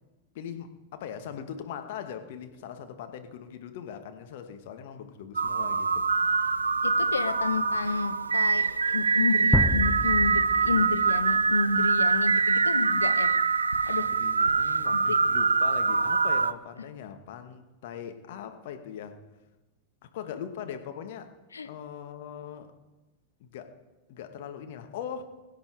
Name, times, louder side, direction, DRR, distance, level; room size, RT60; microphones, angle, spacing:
voice 1, 0.3-6.3 14.0-19.2 20.0-21.3 21.6-22.7 23.4-23.7 24.1-25.2, left 8 dB, 50° left, 1.5 m, -40 dB
sound 1, 5.4-16.5, right 4 dB, 75° right, 0.5 m, -24 dB
voice 2, 6.8-13.3 13.9-14.1 14.9-15.2 21.5-21.7, left 4 dB, 75° left, 0.8 m, -30 dB
sound 2, 9.5-11.5, left 2 dB, ahead, 0.7 m, -29 dB
22.0 x 9.7 x 4.8 m
figure-of-eight pair, 90°, 0 cm